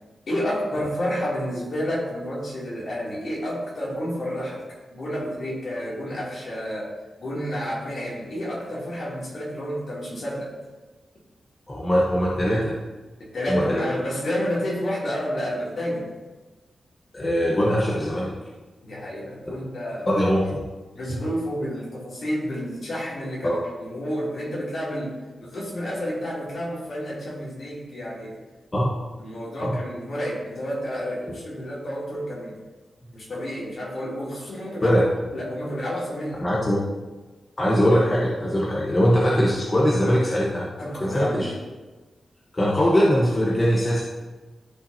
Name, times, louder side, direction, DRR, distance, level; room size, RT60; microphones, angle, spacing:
voice 1, 0.3-4.6 4.9-6.9 7.2-10.5 13.2-16.1 18.8-20.1 20.4-20.5 20.9-28.4 29.2-32.5 33.1-35.0 35.3-36.4 40.8-41.5, equal, 55° left, -6 dB, 2.9 m, -30 dB
voice 2, 11.7-12.7 13.5-13.8 17.1-18.3 20.1-20.6 23.4-23.6 28.7-29.0 29.6-29.8 34.8-35.0 36.4-36.8 37.6-40.7 41.0-41.5 42.5-44.0, equal, 20° left, -5 dB, 1.1 m, -21 dB
13.5 x 5.6 x 2.8 m, 1.3 s
wide cardioid pair, 165°, 0 cm